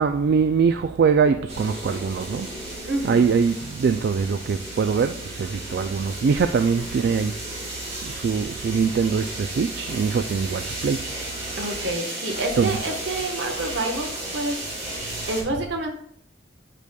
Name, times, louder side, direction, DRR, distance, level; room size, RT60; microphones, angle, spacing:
voice 1, 0.0-2.5 3.0-7.3 8.0-11.0 12.6-12.8, right 5 dB, 60° right, 0.3 m, -22 dB
sound 1, 1.5-15.4, right 1 dB, 40° right, 1.6 m, -34 dB
voice 2, 2.9-3.3 11.5-14.9 15.3-15.9, right 2 dB, 80° right, 1.2 m, -28 dB
8.3 x 5.1 x 2.3 m
head